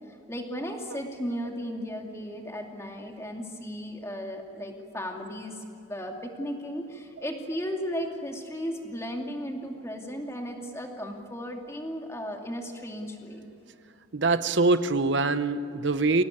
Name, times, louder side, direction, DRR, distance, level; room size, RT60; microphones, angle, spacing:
voice 1, 0.1-13.5, equal, 15° left, 2 dB, 2.5 m, -35 dB
voice 2, 14.1-16.2, right 3 dB, 65° right, 11 dB, 0.8 m, -24 dB
25.0 x 18.0 x 9.9 m, 2.6 s
head